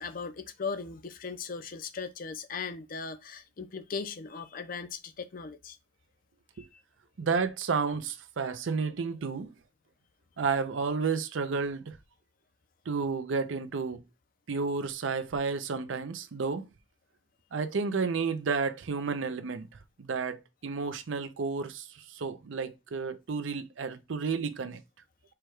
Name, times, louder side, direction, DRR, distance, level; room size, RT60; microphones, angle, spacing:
voice 1, 0.0-5.8 6.6-6.7, left 5 dB, 50° left, 0.5 m, -38 dB
voice 2, 7.2-9.5 10.4-12.0 12.9-14.0 14.5-16.6 17.5-19.7 20.0-24.8, right 5 dB, 80° right, 0.5 m, -31 dB
4.6 x 2.3 x 4.6 m
head